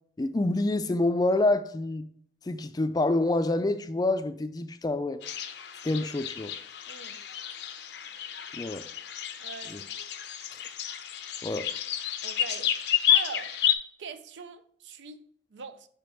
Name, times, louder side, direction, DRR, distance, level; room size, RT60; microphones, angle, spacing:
voice 1, 0.2-2.0 2.5-5.2 5.8-6.5 8.5-8.8 9.7-9.8 11.4-11.6, left 2 dB, 20° left, 0.3 m, -27 dB
sound 1, 5.2-13.7, left 10 dB, 70° left, 0.6 m, -30 dB
voice 2, 6.9-7.2 9.4-9.9 12.2-12.7 13.1-13.6 14.0-15.9, right 5 dB, 85° right, 0.5 m, -42 dB
5.1 x 4.5 x 4.4 m
head